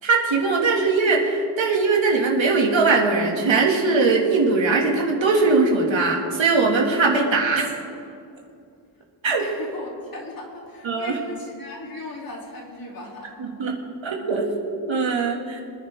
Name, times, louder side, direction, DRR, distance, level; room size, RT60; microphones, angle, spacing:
voice 1, 0.0-7.7 9.2-9.4 10.8-11.2 13.4-13.8 14.0-15.6, right 3 dB, 70° right, -1 dB, 2.4 m, -20 dB
voice 2, 9.4-13.6, left 2 dB, 45° left, -3 dB, 3.3 m, -37 dB
26.0 x 10.5 x 3.7 m, 2.4 s
wide cardioid pair, 135°, 48 cm